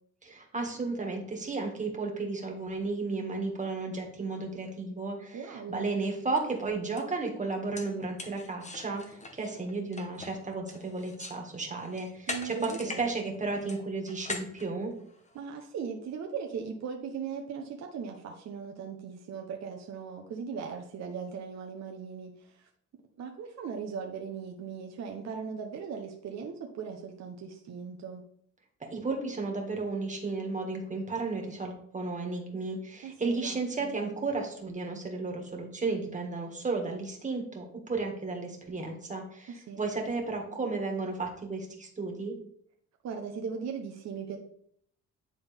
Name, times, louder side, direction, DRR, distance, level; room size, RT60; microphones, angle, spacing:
voice 1, 0.2-14.9 28.9-42.3, right 3 dB, 25° right, 2 dB, 1.9 m, -33 dB
voice 2, 5.3-5.9 12.3-13.1 15.3-22.7 23.2-28.2 33.0-33.9 39.5-39.8 43.0-44.4, right 6 dB, 60° right, 2 dB, 0.9 m, -39 dB
sound 1, 5.9-6.0 6.4-6.5 7.0-7.1 7.5-11.4 11.8-13.1 13.3-15.5, left 3 dB, 25° left, 1.1 m, -42 dB
9.8 x 3.8 x 3.5 m, 0.66 s
cardioid pair, 90°, 30 cm